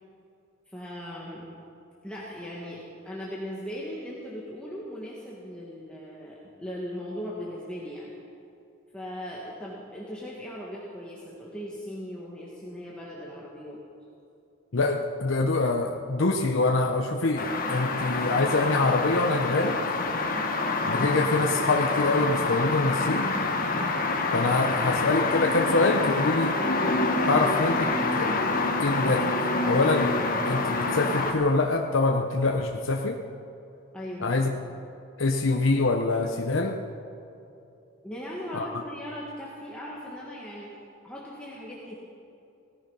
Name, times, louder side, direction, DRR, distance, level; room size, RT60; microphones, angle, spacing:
voice 1, 0.7-1.5 2.0-8.1 8.9-13.8 33.9-34.3 38.0-40.7 41.0-42.0, equal, 5° left, -5 dB, 1.6 m, -38 dB
voice 2, 14.7-19.8 20.8-23.3 24.3-26.6 27.2-28.4 28.8-29.3 29.7-30.1 30.4-33.2 34.2-34.5 35.2-36.8 38.5-38.7, left 3 dB, 70° left, 2 dB, 0.8 m, -25 dB
sound 1, 17.4-31.3, left 3 dB, 40° left, 1.4 m, -27 dB
18.0 x 14.5 x 5.5 m, 2.8 s
head